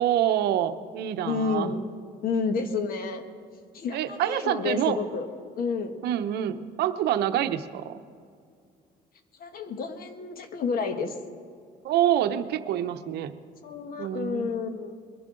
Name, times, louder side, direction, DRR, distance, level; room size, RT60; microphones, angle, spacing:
voice 1, 0.0-1.7 3.9-5.0 6.0-8.0 11.8-13.3 14.0-14.8, right 11 dB, 75° right, 10 dB, 0.7 m, -26 dB
voice 2, 1.2-1.8 2.2-3.2 3.7-5.3 5.6-6.0 9.4-11.2 13.6-15.0, left 5 dB, 60° left, 8 dB, 1.3 m, -30 dB
22.0 x 11.5 x 3.8 m, 2.3 s
cardioid pair, 110°, 17 cm